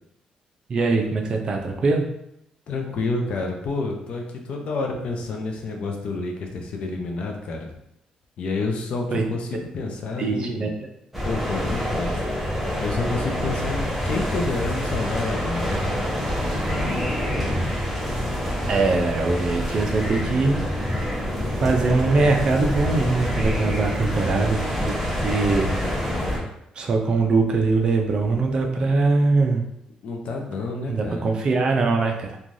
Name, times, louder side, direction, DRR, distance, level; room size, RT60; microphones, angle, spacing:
voice 1, 0.7-2.0 9.1-9.2 10.2-10.7 18.7-20.6 21.6-24.6 24.9-25.7 26.8-29.6 30.9-32.4, right 3 dB, 40° right, 2 dB, 0.4 m, -22 dB
voice 2, 2.7-7.7 8.4-10.7 11.2-12.5 12.8-15.9 18.6-18.7 30.0-31.3, left 3 dB, 55° left, 2 dB, 0.5 m, -29 dB
sound 1, 11.1-26.4, equal, 5° right, 0.7 m, -26 dB
3.1 x 2.3 x 2.6 m, 0.80 s
cardioid pair, 145°, 2 cm